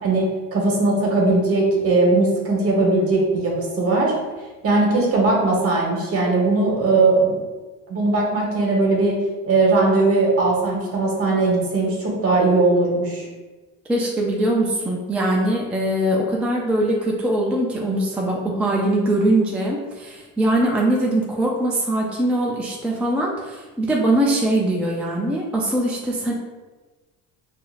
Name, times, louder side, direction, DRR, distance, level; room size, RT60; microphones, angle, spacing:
voice 1, 0.0-4.1 4.6-7.3 7.9-9.2 9.4-13.3, right 3 dB, 45° right, -2 dB, 1.1 m, -19 dB
voice 2, 13.9-26.3, right 1 dB, 5° right, -3 dB, 0.3 m, -22 dB
4.7 x 2.5 x 2.4 m, 1.2 s
cardioid pair, 120°, 34 cm